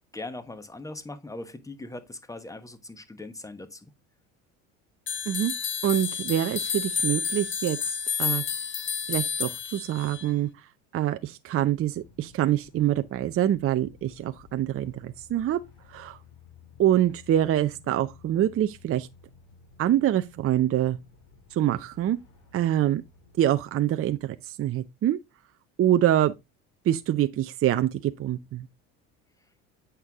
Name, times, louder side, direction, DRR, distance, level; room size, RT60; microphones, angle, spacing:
voice 1, 0.1-3.9, left 2 dB, 10° left, 1.2 m, -40 dB
sound 1, 5.1-10.3, left 6 dB, 30° left, 0.7 m, -30 dB
voice 2, 5.8-7.8 8.2-8.4 9.1-10.5 10.9-15.6 15.9-16.2 16.8-19.1 19.8-21.0 21.5-22.2 22.5-23.0 23.4-25.2 25.8-26.3 26.9-28.7, right 12 dB, 35° right, 0.6 m, -25 dB
sound 2, 11.8-23.6, left 6 dB, 60° left, 2.8 m, -54 dB
8.1 x 4.5 x 3.6 m
hypercardioid pair, 70°, 38 cm